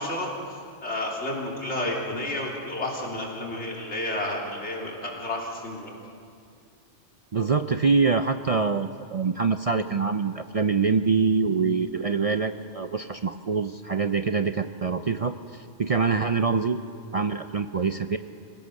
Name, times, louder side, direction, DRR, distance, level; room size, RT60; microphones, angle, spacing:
voice 1, 0.0-5.9 11.4-11.5, left 1 dB, 80° left, -2 dB, 3.7 m, -31 dB
voice 2, 7.3-16.8 17.1-18.2, right 5 dB, 45° right, 9 dB, 0.5 m, -25 dB
26.0 x 16.5 x 6.6 m, 2.4 s
omnidirectional pair, 1.1 m